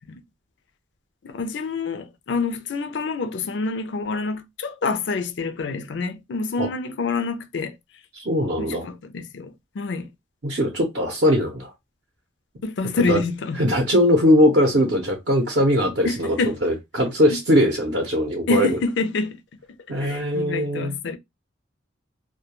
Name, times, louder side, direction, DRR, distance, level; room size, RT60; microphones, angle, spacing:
voice 1, 1.2-7.8 8.6-10.1 12.6-13.6 16.0-16.6 17.3-17.4 18.5-19.4 20.0-21.2, left 4 dB, 65° left, 0.4 m, -27 dB
voice 2, 8.1-8.9 10.4-11.7 13.1-13.2 13.6-18.8 19.9-20.9, equal, 55° right, 0.6 m, -20 dB
2.2 x 2.2 x 2.9 m
head